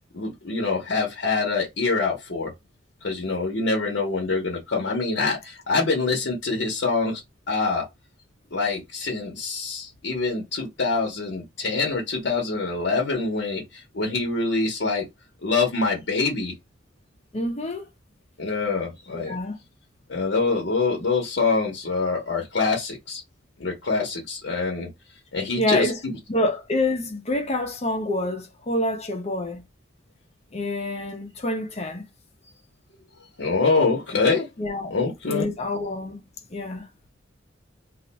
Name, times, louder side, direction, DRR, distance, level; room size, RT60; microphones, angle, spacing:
voice 1, 0.1-2.5 3.0-7.2 7.5-7.8 8.5-15.0 15.4-16.5 18.4-19.4 20.1-23.2 23.6-24.9 25.3-25.9 33.4-34.5 34.9-35.5, left 4 dB, 65° left, 0.8 m, -25 dB
voice 2, 17.3-17.8 19.1-19.6 25.6-26.0 26.3-29.6 30.5-32.0 34.6-35.0 35.3-36.2 36.5-36.9, left 1 dB, 35° left, 0.7 m, -27 dB
2.5 x 2.2 x 3.9 m
head